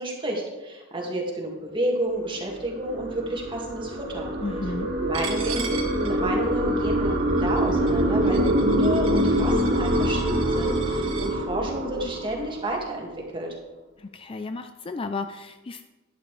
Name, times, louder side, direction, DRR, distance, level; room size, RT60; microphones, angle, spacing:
voice 1, 0.0-4.3 5.0-13.6, right 1 dB, 25° right, -1 dB, 2.1 m, -31 dB
sound 1, 2.2-12.9, equal, 50° right, 2.0 m, -25 dB
voice 2, 4.4-4.9 14.0-15.8, left 3 dB, 25° left, 8 dB, 0.4 m, -33 dB
Coin (dropping), 5.1-11.3, right 6 dB, 70° right, 1.8 m, -39 dB
11.0 x 11.0 x 3.4 m, 1.2 s
head